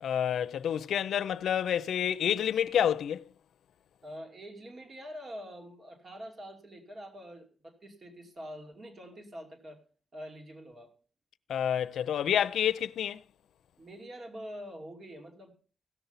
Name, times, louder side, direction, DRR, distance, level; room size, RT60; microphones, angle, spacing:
voice 1, 0.0-3.2 11.5-13.2, left 9 dB, 85° left, 0.5 m, -28 dB
voice 2, 4.0-9.8 10.1-10.9 13.8-15.5, equal, 45° right, 2.6 m, -45 dB
16.5 x 6.8 x 5.7 m
cardioid pair, 90°, 0 cm